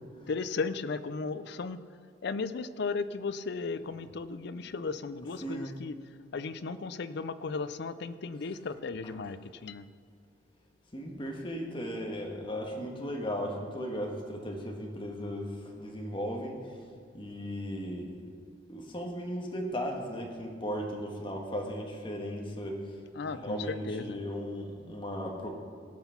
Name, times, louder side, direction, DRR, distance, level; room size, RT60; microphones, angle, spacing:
voice 1, 0.3-1.8 2.2-6.0 6.3-9.9 23.2-24.2, left 4 dB, 60° left, 13 dB, 0.5 m, -35 dB
voice 2, 5.4-5.7 10.9-16.6 17.1-18.2 18.7-22.9 23.2-25.5, equal, 25° left, 1 dB, 1.5 m, -36 dB
17.0 x 5.9 x 5.8 m, 2.1 s
head